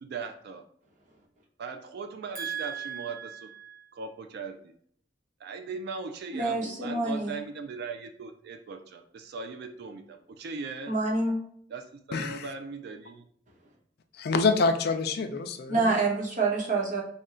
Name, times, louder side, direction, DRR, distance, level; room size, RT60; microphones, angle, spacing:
voice 1, 0.0-0.6 1.6-3.5 3.9-4.7 5.4-10.9 11.7-13.2, right 4 dB, 60° right, 6 dB, 0.3 m, -39 dB
voice 2, 2.4-3.2 3.6-3.7 6.3-7.3 10.9-11.4 15.7-17.0, right 3 dB, 45° right, -2 dB, 1.0 m, -28 dB
voice 3, 12.1-12.4 14.2-15.9, left 4 dB, 60° left, 8 dB, 0.4 m, -26 dB
4.2 x 2.2 x 3.7 m, 0.63 s
head